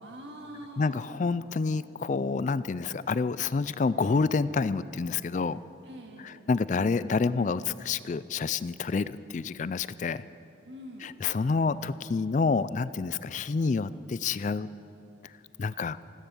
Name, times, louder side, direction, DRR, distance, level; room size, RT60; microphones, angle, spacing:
voice 1, 0.0-1.3 5.9-6.4 10.6-11.1, equal, 70° right, 3 dB, 2.0 m, -44 dB
voice 2, 0.8-5.6 6.2-10.2 11.0-14.7 15.6-16.0, left 4 dB, 40° left, 17 dB, 0.3 m, -28 dB
15.5 x 13.0 x 7.0 m, 3.0 s
head